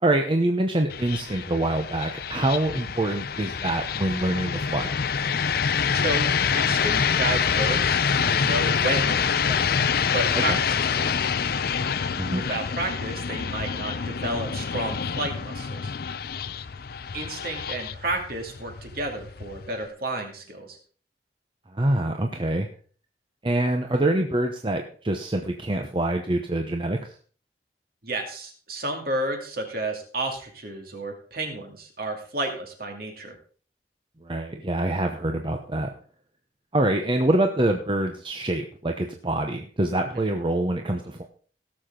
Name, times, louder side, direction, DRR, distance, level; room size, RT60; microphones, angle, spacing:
voice 1, 0.0-4.9 10.5-10.6 12.1-12.4 21.7-22.7 23.4-27.1 34.2-35.9 36.7-41.2, right 1 dB, 30° right, 4 dB, 0.8 m, -25 dB
sound 1, 0.9-19.9, left 6 dB, 60° left, 0.5 m, -26 dB
voice 2, 6.0-9.7 10.1-11.2 12.3-15.9 17.1-20.8 28.0-33.4 40.1-40.2, right 2 dB, 55° right, 3 dB, 2.5 m, -31 dB
17.5 x 6.8 x 3.8 m, 0.43 s
head